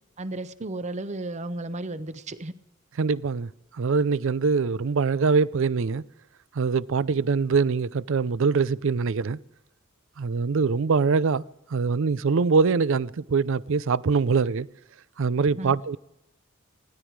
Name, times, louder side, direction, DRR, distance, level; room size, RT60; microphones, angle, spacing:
voice 1, 0.2-2.5 15.5-15.8, right 2 dB, 35° right, 0.8 m, -34 dB
voice 2, 3.0-6.0 6.5-9.4 10.2-11.4 11.7-14.7 15.2-16.0, right 5 dB, 65° right, 0.5 m, -23 dB
20.5 x 14.5 x 4.7 m
head